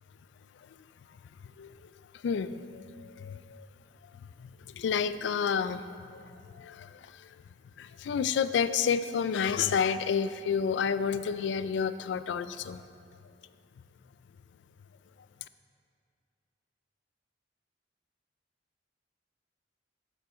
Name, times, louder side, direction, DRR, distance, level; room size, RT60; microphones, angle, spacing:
voice 1, 1.6-1.9 2.2-3.7 4.1-7.4 7.8-12.8, left 7 dB, 70° left, 13 dB, 0.3 m, -30 dB
8.1 x 7.4 x 4.3 m, 2.3 s
head